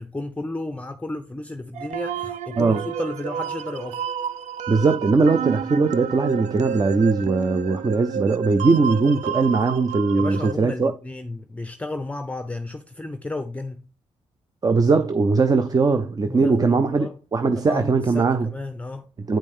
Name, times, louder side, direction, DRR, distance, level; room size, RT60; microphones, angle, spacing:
voice 1, 0.0-4.1 10.1-13.8 15.7-15.8 16.2-17.2 17.6-19.1, left 2 dB, 10° left, 0.6 m, -33 dB
sound 1, 1.7-10.5, right 8 dB, 85° right, 0.5 m, -30 dB
voice 2, 4.7-10.9 14.6-18.5 19.3-19.4, right 4 dB, 30° right, 0.6 m, -20 dB
8.7 x 5.2 x 3.6 m
cardioid pair, 70°, 12 cm